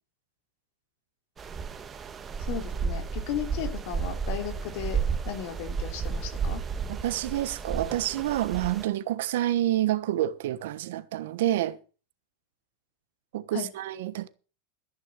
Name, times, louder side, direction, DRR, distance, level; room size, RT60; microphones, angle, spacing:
sound 1, 1.4-8.8, right 5 dB, 25° right, 1.5 m, -32 dB
voice 1, 2.4-6.6 13.5-13.7, left 9 dB, 60° left, 2.9 m, -35 dB
voice 2, 6.9-11.8 13.3-14.3, right 13 dB, 75° right, 1.2 m, -28 dB
14.5 x 6.3 x 7.5 m
supercardioid pair, 120°, 0 cm